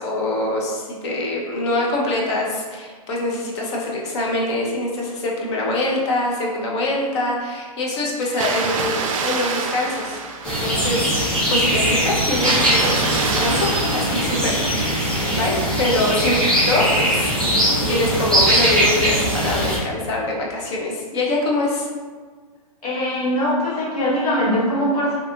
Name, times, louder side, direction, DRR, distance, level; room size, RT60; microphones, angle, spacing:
voice 1, 0.0-10.2 10.4-14.7 15.4-16.4 16.7-21.9, left 2 dB, 45° left, -2 dB, 0.6 m, -24 dB
Water, 8.2-11.0 12.3-15.1, right 4 dB, 60° right, 0.4 m, -27 dB
sound 1, 10.4-19.8, right 1 dB, 5° left, 0.5 m, -20 dB
voice 2, 22.8-25.2, equal, 80° left, -7 dB, 1.3 m, -21 dB
2.6 x 2.3 x 2.6 m, 1.5 s
hypercardioid pair, 145°, 20 cm